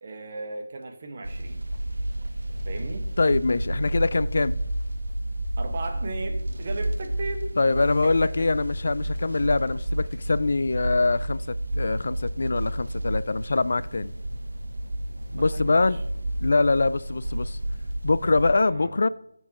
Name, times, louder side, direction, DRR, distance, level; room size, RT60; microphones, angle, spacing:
voice 1, 0.0-1.6 2.6-3.1 5.6-7.5 8.0-8.6 15.4-16.0 18.6-18.9, right 2 dB, 35° right, 1.5 m, -36 dB
sound 1, 1.2-18.5, right 1 dB, 70° right, 1.0 m, -31 dB
voice 2, 3.2-4.6 7.6-14.1 15.3-16.0 16.4-17.6 18.0-19.1, left 3 dB, 55° left, 0.3 m, -24 dB
18.0 x 7.0 x 3.0 m
figure-of-eight pair, 160°, 0 cm